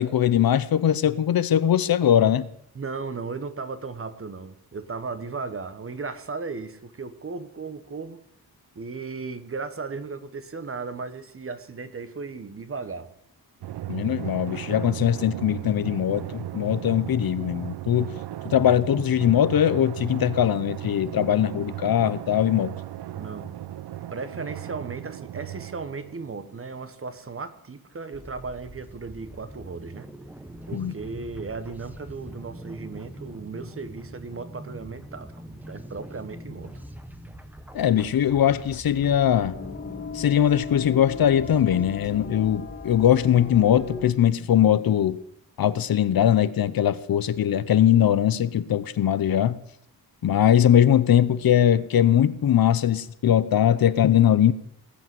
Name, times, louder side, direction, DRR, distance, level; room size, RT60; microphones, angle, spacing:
voice 1, 0.0-2.5 13.9-18.1 18.4-22.7 30.7-30.9 37.7-39.6 40.1-45.2 45.6-49.6 50.2-54.5, left 10 dB, 65° left, 0.8 m, -21 dB
voice 2, 2.7-8.2 8.7-13.1 23.1-23.6 24.1-30.1 30.7-35.3 35.7-36.8, right 4 dB, 35° right, 1.2 m, -36 dB
Drum, 13.6-26.7, right 13 dB, 85° right, 0.7 m, -36 dB
sound 1, 28.1-44.1, right 1 dB, 5° right, 1.0 m, -43 dB
sound 2, 38.9-44.1, left 5 dB, 30° left, 1.7 m, -37 dB
19.5 x 8.6 x 7.8 m
wide cardioid pair, 150°, 38 cm